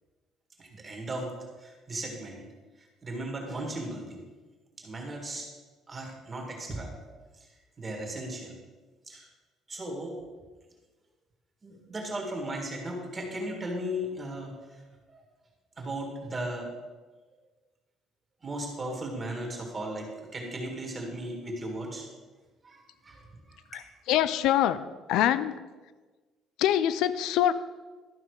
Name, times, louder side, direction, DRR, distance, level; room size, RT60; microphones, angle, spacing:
voice 1, 0.6-1.3 1.6-2.5 3.0-4.2 4.8-5.5 5.9-6.9 7.8-8.6 9.1-9.3 9.7-10.2 11.6-14.5 15.1-15.2 15.8-16.7 18.4-22.1 22.6-23.8, right 1 dB, 20° right, 0 dB, 1.7 m, -36 dB
voice 2, 24.1-24.8 25.1-25.6 26.6-27.5, left 11 dB, 75° left, 15 dB, 0.4 m, -24 dB
12.5 x 5.7 x 4.8 m, 1.3 s
cardioid pair, 170°, 0 cm